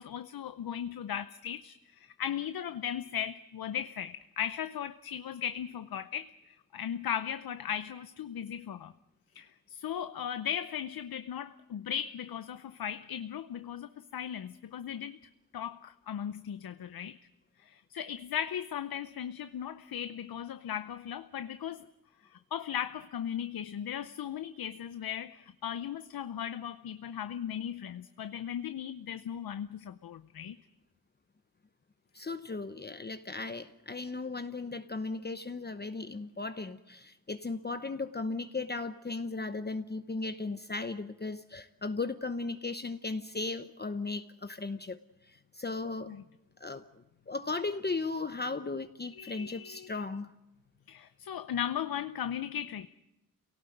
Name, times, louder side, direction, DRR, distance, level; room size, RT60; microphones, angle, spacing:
voice 1, 0.0-8.9 9.3-15.2 15.5-17.2 17.6-21.9 22.2-30.6 46.1-46.2 49.2-49.9 50.9-52.9, left 9 dB, 75° left, 0.7 m, -37 dB
voice 2, 32.1-46.1 46.6-50.3, left 3 dB, 25° left, 0.9 m, -36 dB
28.0 x 18.0 x 7.9 m
wide cardioid pair, 90°, 36 cm